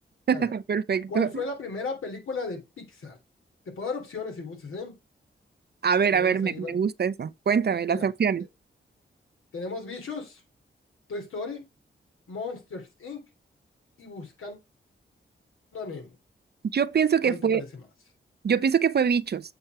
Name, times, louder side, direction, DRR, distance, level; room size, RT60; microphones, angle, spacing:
voice 1, 0.3-1.3 5.8-8.4 16.7-17.6 18.4-19.4, right 7 dB, 50° right, 0.6 m, -24 dB
voice 2, 1.1-3.2 3.8-5.0 6.1-6.8 7.9-8.1 9.5-10.4 11.1-11.6 12.3-13.2 14.0-14.6 15.7-16.1 17.2-17.8, left 4 dB, 80° left, 3.1 m, -35 dB
8.1 x 4.3 x 4.7 m
cardioid pair, 50°, 21 cm